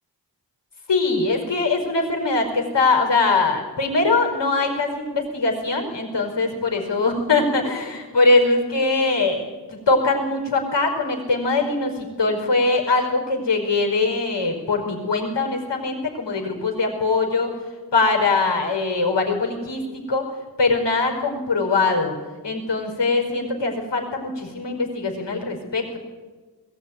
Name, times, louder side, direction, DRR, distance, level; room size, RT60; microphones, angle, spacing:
voice 1, 0.9-9.5 9.7-17.6 17.9-20.3 20.6-22.1 22.4-26.0, left 3 dB, 75° left, 2 dB, 4.9 m, -22 dB
21.0 x 17.0 x 9.4 m, 1.3 s
wide cardioid pair, 70°, 43 cm